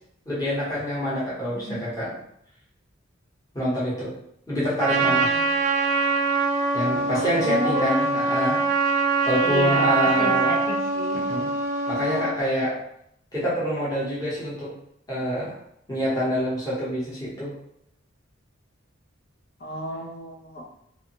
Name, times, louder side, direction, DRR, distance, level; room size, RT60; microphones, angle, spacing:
voice 1, 0.2-2.1 3.5-4.1 4.5-5.4 6.7-8.6 9.3-10.6 11.3-11.5 11.9-12.8 13.3-14.7 15.1-15.6 15.9-17.5, equal, 20° left, -9 dB, 1.0 m, -26 dB
Trumpet, 4.8-12.4, right 3 dB, 40° right, 0.3 m, -24 dB
voice 2, 5.0-5.6 7.1-8.0 9.4-11.2 19.6-20.6, equal, 50° left, -3 dB, 0.7 m, -30 dB
2.6 x 2.3 x 2.9 m, 0.73 s
head